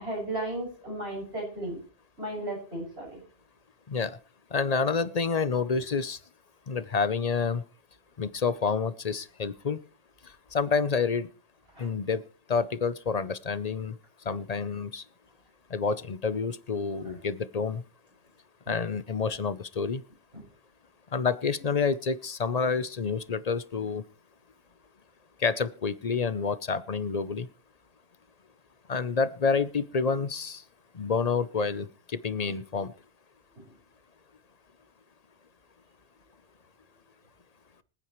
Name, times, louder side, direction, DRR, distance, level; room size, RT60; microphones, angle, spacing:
voice 1, 0.0-1.8 2.2-3.2 11.7-11.9 18.7-18.8 20.3-20.4 33.6-33.7, right 1 dB, 80° right, -2 dB, 7.1 m, -35 dB
voice 2, 3.9-4.2 4.5-6.2 6.7-7.6 8.2-9.8 10.5-11.3 11.8-12.2 12.5-13.9 14.3-15.0 15.7-17.8 18.7-20.0 21.1-24.0 25.4-27.5 28.9-30.6 30.9-32.9, left 5 dB, 45° left, 15 dB, 0.7 m, -28 dB
25.5 x 9.0 x 3.1 m, 0.35 s
omnidirectional pair, 1.0 m